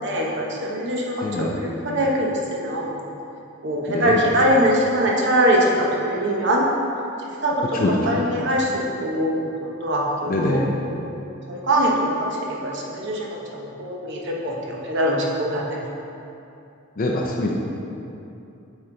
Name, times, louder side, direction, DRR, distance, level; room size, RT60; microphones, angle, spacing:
voice 1, 0.0-3.0 3.6-6.7 7.4-10.6 10.9-11.2 11.5-12.3 12.6-15.8, equal, 60° right, -2 dB, 1.0 m, -23 dB
voice 2, 1.2-1.6 3.9-4.2 7.7-8.2 10.3-10.7 17.0-17.5, left 1 dB, 40° left, -2 dB, 0.5 m, -23 dB
7.4 x 4.6 x 3.9 m, 2.7 s
head